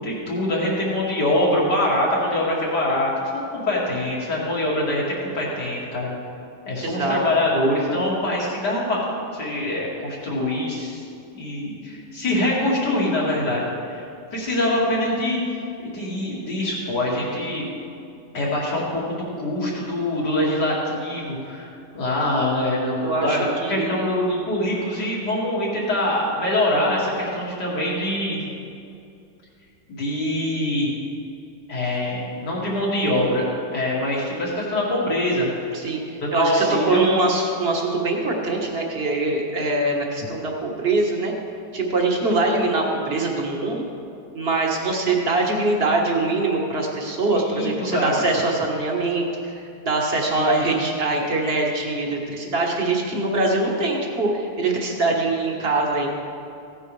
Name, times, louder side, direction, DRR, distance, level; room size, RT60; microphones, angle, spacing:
voice 1, 0.0-6.1 6.7-9.0 9.3-11.0 11.3-14.0 14.3-17.7 18.3-21.7 21.9-28.4 29.9-30.9 31.7-33.4 33.7-35.5 36.2-37.0 47.3-48.1 50.3-50.6, left 1 dB, 75° left, -5 dB, 3.0 m, -24 dB
voice 2, 6.8-7.2 23.0-24.1 35.7-41.3 41.7-43.8 44.3-56.1, right 2 dB, 35° right, 0 dB, 1.6 m, -23 dB
16.5 x 9.5 x 3.4 m, 2.6 s
omnidirectional pair, 1.8 m